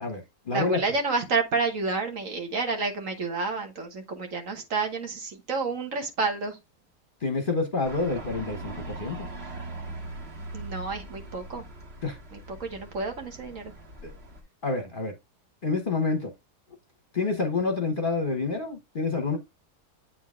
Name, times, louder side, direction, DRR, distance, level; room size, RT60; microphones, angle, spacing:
voice 1, 0.0-0.8 7.2-9.3 12.0-12.2 14.0-14.1 14.6-15.1 15.6-16.3 17.1-19.4, left 3 dB, 35° left, 1.0 m, -28 dB
voice 2, 0.5-6.6 10.5-11.6 12.3-13.7, right 4 dB, 55° right, 1.5 m, -30 dB
sound 1, 7.8-14.4, right 2 dB, 40° right, 1.9 m, -41 dB
8.6 x 3.9 x 3.6 m
omnidirectional pair, 1.7 m